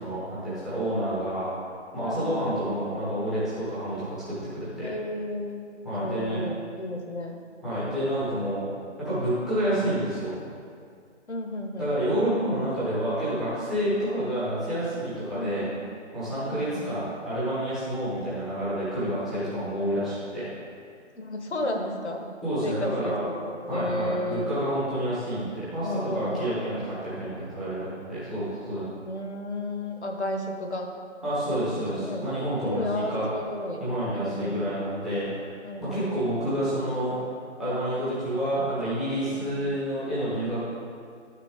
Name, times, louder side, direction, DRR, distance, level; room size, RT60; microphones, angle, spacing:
voice 1, 0.0-1.5 1.9-4.9 5.8-6.4 7.6-8.6 9.0-10.4 11.8-15.7 16.1-20.5 22.4-23.2 23.7-28.9 31.2-33.3 33.8-35.3 35.8-37.1 37.6-40.6, right 1 dB, ahead, -14 dB, 1.0 m, -29 dB
voice 2, 2.0-2.6 4.8-5.6 5.9-7.4 11.3-12.0 15.3-15.8 16.5-16.9 21.1-22.3 22.6-24.5 25.8-26.6 29.0-30.9 31.6-32.3 32.6-33.8 34.1-34.6 35.6-36.3 39.3-39.7, left 1 dB, 65° left, 3 dB, 1.2 m, -33 dB
11.5 x 6.0 x 3.6 m, 2.3 s
figure-of-eight pair, 150°, 37 cm